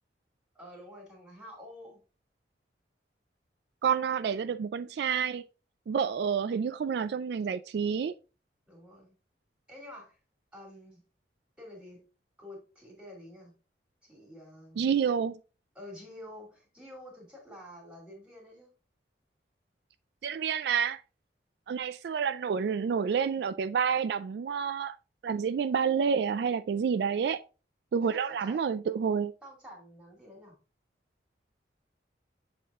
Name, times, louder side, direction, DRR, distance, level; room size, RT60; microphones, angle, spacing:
voice 1, 0.5-2.0 8.7-9.1 9.7-10.2 10.5-11.0 11.6-12.0 12.4-13.5 14.0-14.9 15.7-18.7 28.0-28.6 29.4-30.6, left 1 dB, 5° right, 2.5 m, -49 dB
voice 2, 3.8-5.4 5.9-8.1 14.8-15.4 20.2-21.0 21.7-25.0 25.2-27.4 27.9-29.3, right 6 dB, 65° right, 0.3 m, -29 dB
7.7 x 3.6 x 3.5 m
head